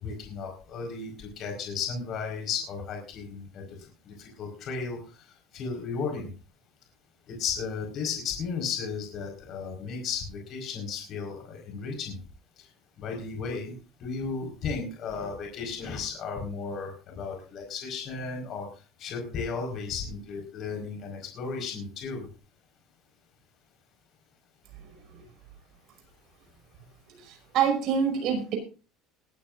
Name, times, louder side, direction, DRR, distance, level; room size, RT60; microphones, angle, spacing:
voice 1, 0.0-3.7 4.1-5.0 5.5-6.3 7.3-12.2 13.0-13.7 14.0-18.7 19.0-22.3, left 5 dB, 35° left, 2 dB, 4.8 m, -34 dB
voice 2, 27.2-28.6, right 7 dB, 45° right, 4 dB, 5.7 m, -26 dB
20.5 x 13.5 x 2.6 m, 0.34 s
cardioid pair, 180°, 0 cm